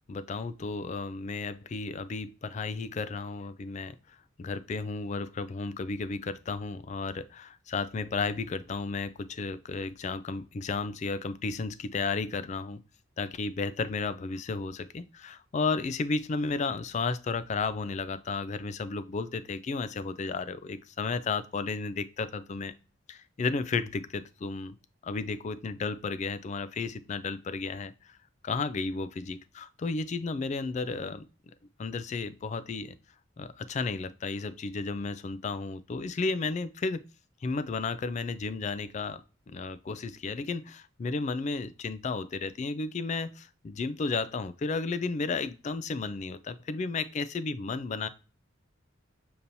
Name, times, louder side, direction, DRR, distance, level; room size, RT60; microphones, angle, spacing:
voice 1, 0.0-12.8 13.2-22.7 23.1-24.7 25.0-28.2 28.4-31.3 31.8-32.9 33.4-37.1 37.4-48.1, left 4 dB, 35° left, 13 dB, 0.3 m, -33 dB
6.8 x 2.9 x 2.6 m, 0.34 s
head